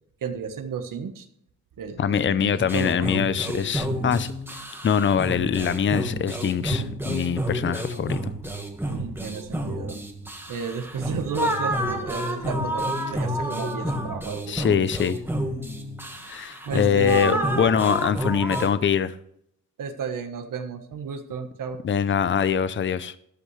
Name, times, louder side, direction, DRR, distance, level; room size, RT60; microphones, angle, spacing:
voice 1, 0.2-1.3 1.8-3.1 8.9-10.0 10.5-14.9 16.6-17.5 19.8-21.8, right 6 dB, 80° right, 1.4 m, -33 dB
voice 2, 2.0-8.3 14.5-15.2 16.3-19.1 21.8-23.1, left 7 dB, 35° left, 0.6 m, -23 dB
sound 1, 2.7-18.7, equal, 5° right, 1.7 m, -30 dB
13.0 x 12.0 x 3.3 m
wide cardioid pair, 125°, 32 cm